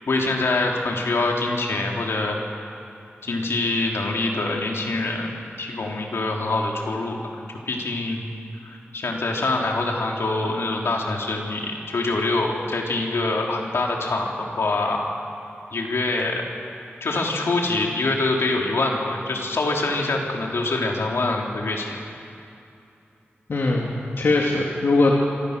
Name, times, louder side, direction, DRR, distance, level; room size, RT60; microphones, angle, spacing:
voice 1, 0.0-2.4 3.2-7.2 7.7-8.2 8.6-15.1 15.7-16.4 17.0-22.0, left 2 dB, 85° left, 0 dB, 3.4 m, -25 dB
voice 2, 23.5-25.1, left 2 dB, 70° left, -2 dB, 2.7 m, -21 dB
26.0 x 24.5 x 6.7 m, 2.7 s
wide cardioid pair, 115°, 4 cm